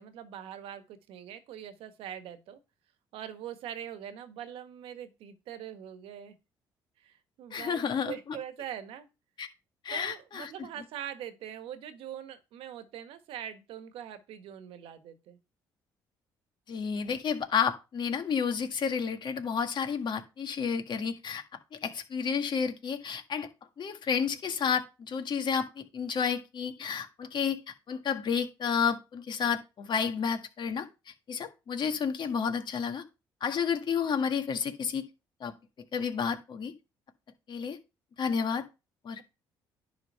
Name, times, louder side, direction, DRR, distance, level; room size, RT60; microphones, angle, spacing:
voice 1, 0.0-2.6 3.1-6.3 7.0-9.1 9.9-15.4, right 10 dB, 75° right, 1.4 m, -43 dB
voice 2, 7.5-8.1 9.4-9.5 9.8-10.5 16.7-21.4 21.7-23.5 23.8-25.7 25.9-27.6 27.9-30.9 31.3-33.0 33.4-35.0 35.4-35.5 35.9-36.7 37.5-37.8 38.2-38.6 39.0-39.2, left 6 dB, 55° left, 1.7 m, -31 dB
10.5 x 3.9 x 5.5 m
supercardioid pair, 65°, 10 cm